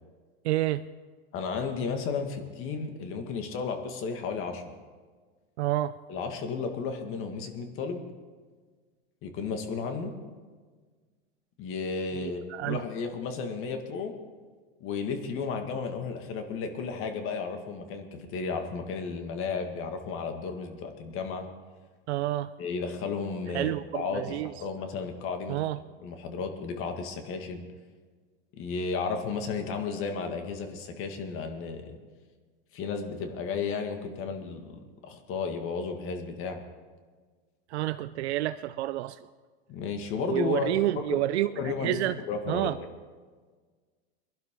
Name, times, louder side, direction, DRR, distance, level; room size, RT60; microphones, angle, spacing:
voice 1, 0.4-0.8 5.6-6.0 12.1-12.8 22.1-22.5 23.5-24.5 25.5-25.8 37.7-39.2 40.3-42.2 42.5-42.8, right 15 dB, 90° right, 12 dB, 0.5 m, -29 dB
voice 2, 1.3-4.7 6.1-8.0 9.2-10.1 11.6-14.1 14.8-21.5 22.6-25.7 26.0-27.7 28.5-32.0 32.7-36.6 39.7-40.7 41.0-41.2 41.6-42.0 42.3-42.8, left 5 dB, 40° left, 5 dB, 1.9 m, -33 dB
22.5 x 11.5 x 3.8 m, 1.5 s
supercardioid pair, 135°, 32 cm